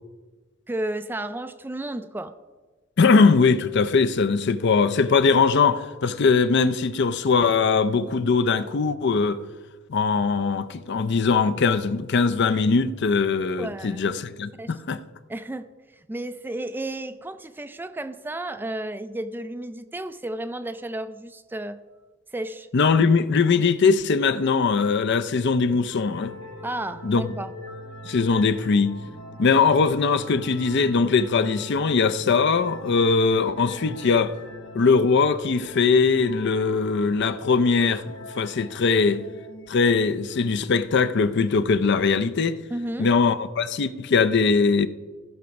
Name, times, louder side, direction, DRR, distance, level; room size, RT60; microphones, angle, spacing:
voice 1, 0.7-2.3 13.6-14.0 14.6-14.7 15.3-15.6 15.9-21.8 22.3-22.7 26.6-27.5 42.7-43.1, right 1 dB, 10° right, 0.3 m, -32 dB
voice 2, 3.0-9.4 9.9-15.0 22.7-26.3 27.0-27.3 28.0-29.0 29.4-34.3 34.7-38.0 38.3-39.2 39.7-42.6 43.0-44.9, left 4 dB, 55° left, 0.5 m, -21 dB
sound 1, 25.9-40.5, equal, 80° left, 2.1 m, -42 dB
15.5 x 5.9 x 5.2 m
head